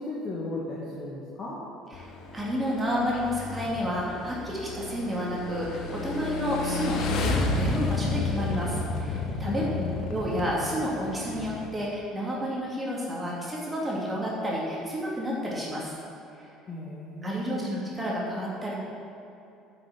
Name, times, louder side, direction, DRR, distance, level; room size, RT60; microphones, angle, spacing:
voice 1, 0.0-1.6 9.4-10.0 16.6-17.7, left 2 dB, 35° left, -6 dB, 2.0 m, -35 dB
Motorcycle / Engine, 1.9-11.7, left 3 dB, 55° left, 1.2 m, -32 dB
voice 2, 2.3-15.9 16.4-16.5 17.2-18.7, equal, 15° right, -5 dB, 2.7 m, -30 dB
9.9 x 6.3 x 7.3 m, 2.7 s
figure-of-eight pair, 60°, 0 cm